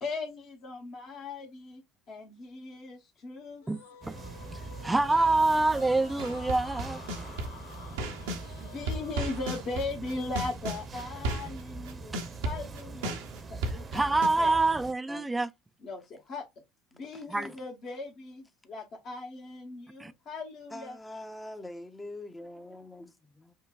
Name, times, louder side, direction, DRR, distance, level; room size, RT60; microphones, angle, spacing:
voice 1, 0.0-3.6 8.6-12.1 12.4-13.1 13.5-14.1 14.4-14.6 15.8-16.4 16.9-21.0, left 3 dB, 50° left, 1.1 m, -38 dB
sound 1, 3.6-10.0, left 6 dB, 80° left, 0.6 m, -49 dB
sound 2, 4.0-14.9, right 3 dB, 30° right, 0.7 m, -43 dB
voice 2, 4.8-7.0 13.9-15.5 17.3-17.5 20.0-20.1, right 2 dB, 15° right, 0.4 m, -26 dB
sound 3, 6.2-8.5 8.9-14.3, right 1 dB, 75° right, 0.7 m, -34 dB
voice 3, 15.1-15.4 17.1-17.6 20.7-23.1 23.4-23.5, left 1 dB, 15° left, 0.7 m, -44 dB
5.5 x 2.2 x 2.4 m
hypercardioid pair, 65°, 0 cm